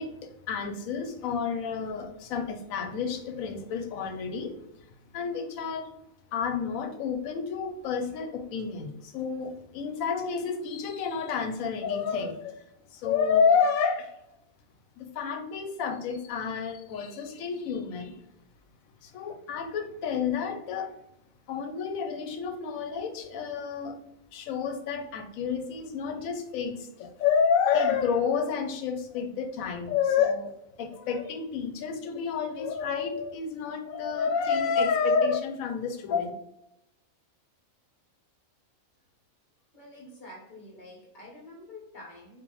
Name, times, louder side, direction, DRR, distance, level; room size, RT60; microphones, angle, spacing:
voice 1, 0.0-4.6 5.1-5.9 6.3-12.6 12.9-14.1 15.0-18.1 19.0-20.9 21.5-24.0 24.3-30.5 30.8-36.3, left 6 dB, 85° left, 6 dB, 1.0 m, -29 dB
voice 2, 39.7-42.4, left 2 dB, 40° left, -1 dB, 0.9 m, -47 dB
4.4 x 2.4 x 3.0 m, 0.83 s
omnidirectional pair, 1.4 m